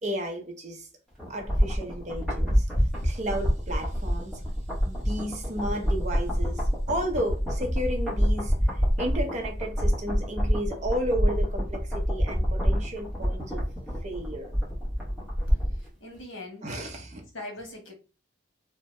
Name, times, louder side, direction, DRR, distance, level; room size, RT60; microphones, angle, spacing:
voice 1, 0.0-0.9 1.3-2.7 3.0-4.4 4.8-13.6 14.0-14.5 16.6-17.2, equal, 35° right, 0.5 m, -33 dB
sound 1, 1.2-15.9 16.2-16.3, equal, ahead, 0.8 m, -27 dB
voice 2, 15.5-16.7 17.3-17.9, left 2 dB, 75° left, 1.1 m, -42 dB
2.7 x 2.1 x 3.1 m
head